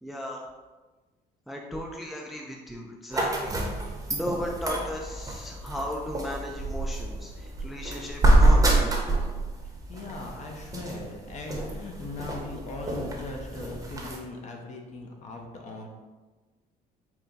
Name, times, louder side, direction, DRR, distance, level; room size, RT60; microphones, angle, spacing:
voice 1, 0.0-0.4 1.5-3.5 4.1-9.0, equal, ahead, 0 dB, 0.4 m, -35 dB
sound 1, 3.1-14.2, right 1 dB, 20° right, 0.8 m, -27 dB
voice 2, 9.9-15.9, left 2 dB, 45° left, 1 dB, 0.8 m, -39 dB
4.5 x 2.2 x 3.9 m, 1.3 s
cardioid pair, 110°, 17 cm